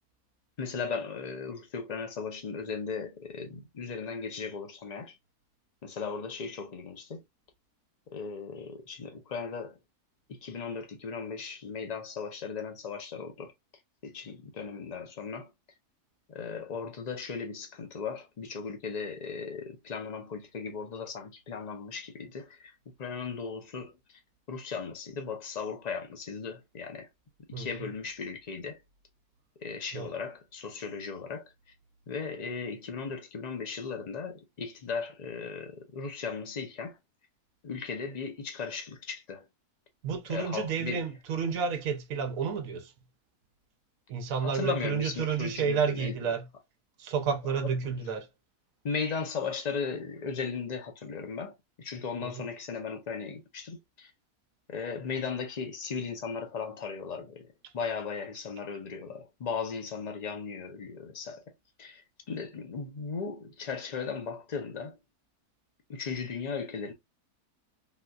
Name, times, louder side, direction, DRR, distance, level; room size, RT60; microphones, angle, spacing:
voice 1, 0.6-5.1 5.8-7.2 8.1-9.8 10.4-13.5 14.0-15.5 16.3-22.7 23.0-24.2 24.5-27.1 27.6-28.8 29.6-31.5 32.1-37.0 37.6-39.4 40.3-41.0 44.4-46.2 47.5-47.7 48.8-54.1 54.7-57.5 57.7-61.4 61.8-65.0 65.9-66.9, left 5 dB, 60° left, 0.4 m, -37 dB
voice 2, 27.5-27.9 29.9-30.1 40.0-42.9 44.1-46.5 47.0-48.3 52.2-52.4 57.6-57.7, right 6 dB, 65° right, 1.1 m, -31 dB
3.8 x 2.6 x 2.3 m
omnidirectional pair, 1.7 m